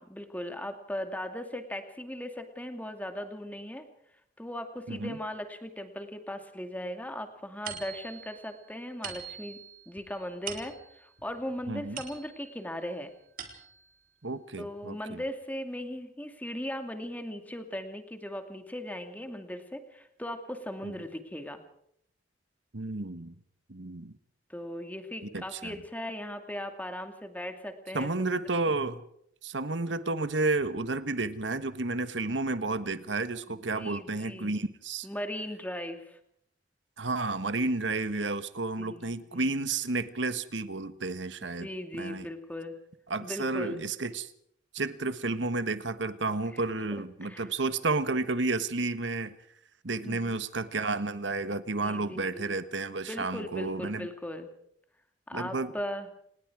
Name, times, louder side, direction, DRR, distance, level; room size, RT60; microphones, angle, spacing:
voice 1, 0.0-3.9 4.4-9.6 9.9-13.1 14.6-21.6 24.5-28.7 33.5-34.5 35.0-36.2 38.8-39.6 41.6-42.8 43.2-43.8 46.5-46.6 47.2-47.5 50.0-50.4 51.8-52.6 53.1-54.5 55.3-56.1, left 1 dB, 10° left, 6 dB, 2.4 m, -38 dB
sound 1, 7.7-12.6 13.1-14.0, right 7 dB, 50° right, 4.4 m, -44 dB
voice 2, 11.7-12.0 14.2-15.2 20.8-20.9 22.7-23.4 23.7-24.1 25.3-25.7 27.9-29.0 29.4-35.1 37.0-41.7 41.9-42.3 43.1-44.3 44.7-49.3 49.8-54.1 55.3-55.7, right 3 dB, 70° right, 12 dB, 1.4 m, -31 dB
29.0 x 20.0 x 4.9 m, 0.71 s
head